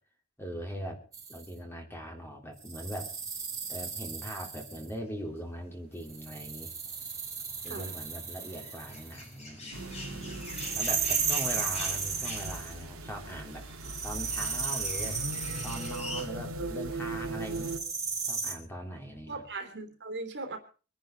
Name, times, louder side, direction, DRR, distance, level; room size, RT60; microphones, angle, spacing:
voice 1, 0.4-1.0 1.3-3.1 3.7-6.7 7.6-10.5 10.7-13.6 14.0-15.2 15.6-17.7 18.3-19.4, equal, 10° left, 2 dB, 3.2 m, -41 dB
sound 1, 1.1-1.5 2.6-4.9 6.1-9.3 10.4-12.8 13.8-16.2 17.5-18.5, right 5 dB, 15° right, 3.1 m, -35 dB
sound 2, 5.2-16.3, left 2 dB, 30° left, 4.9 m, -46 dB
sound 3, 9.7-17.8, right 2 dB, 80° right, 2.5 m, -39 dB
voice 2, 19.3-20.6, right 3 dB, 55° right, 5 dB, 3.1 m, -39 dB
24.5 x 10.5 x 4.6 m, 0.37 s
head